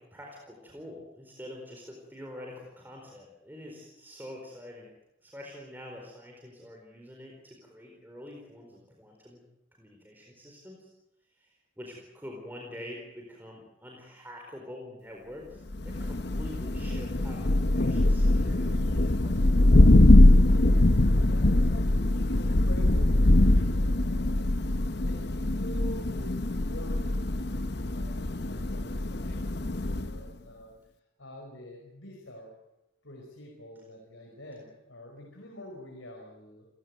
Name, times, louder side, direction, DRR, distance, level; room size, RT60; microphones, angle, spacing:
voice 1, 0.0-4.9 5.2-9.4 9.8-10.9 11.4-19.8, left 1 dB, 10° right, 0 dB, 4.4 m, -46 dB
Thunder, 15.7-30.3, left 1 dB, 55° left, 1.0 m, -22 dB
voice 2, 21.0-23.2 23.4-24.6 24.9-30.7 31.2-32.5 33.0-36.7, equal, 80° left, 1 dB, 5.2 m, -47 dB
28.5 x 16.0 x 9.4 m, 0.91 s
head